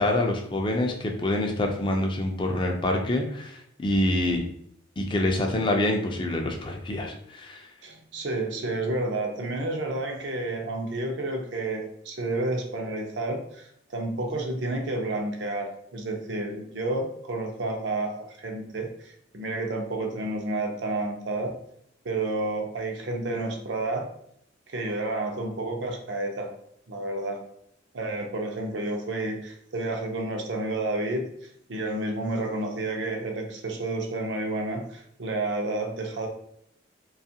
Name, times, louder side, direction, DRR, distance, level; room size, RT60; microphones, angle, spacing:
voice 1, 0.0-4.4 5.0-7.7, left 1 dB, 25° left, 3 dB, 0.3 m, -26 dB
voice 2, 7.8-21.6 22.0-24.1 24.7-26.5 26.9-27.4 27.9-36.3, right 2 dB, 70° right, 2 dB, 0.5 m, -30 dB
2.8 x 2.3 x 2.7 m, 0.72 s
head